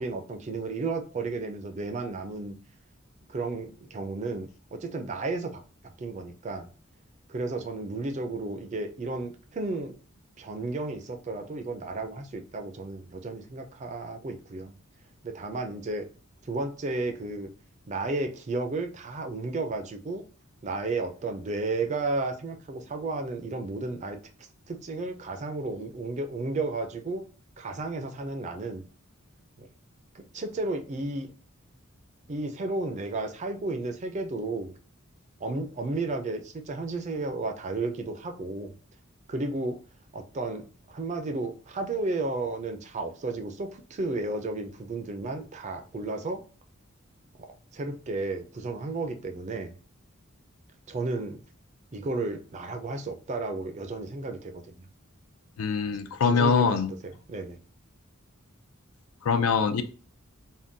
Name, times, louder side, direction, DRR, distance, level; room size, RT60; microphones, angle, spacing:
voice 1, 0.0-2.6 3.3-5.6 6.0-6.7 7.3-10.0 10.4-14.7 15.2-16.1 16.5-17.5 17.9-20.2 20.6-24.2 24.7-27.2 27.6-28.8 29.6-29.7 30.1-31.3 32.3-34.7 35.4-38.7 39.3-39.8 40.1-46.4 47.7-49.7 50.9-51.4 51.9-54.8 56.2-57.6, right 3 dB, 35° right, 0.4 m, -33 dB
voice 2, 55.6-56.9 59.3-59.8, left 5 dB, 90° left, 0.4 m, -23 dB
3.6 x 2.2 x 2.6 m
head